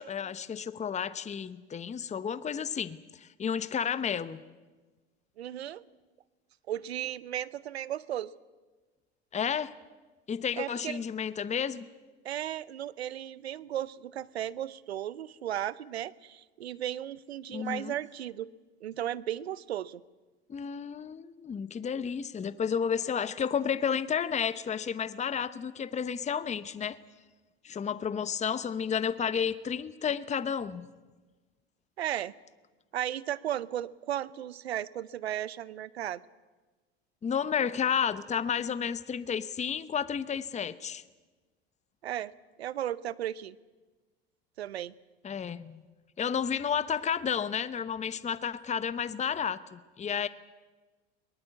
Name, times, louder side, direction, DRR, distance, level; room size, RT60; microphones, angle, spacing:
voice 1, 0.0-4.4 9.3-9.7 10.3-11.8 17.5-17.9 20.5-27.0 27.6-30.9 37.2-41.0 45.2-45.8 46.2-50.3, left 7 dB, 20° left, 14 dB, 0.9 m, -31 dB
voice 2, 5.4-5.8 6.7-8.3 10.6-11.0 12.2-18.5 18.8-20.0 32.0-32.3 32.9-36.2 42.0-42.3 42.6-43.5 44.6-44.9, right 11 dB, 90° right, 20 dB, 0.7 m, -35 dB
22.5 x 19.5 x 8.3 m, 1.3 s
hypercardioid pair, 80°, 31 cm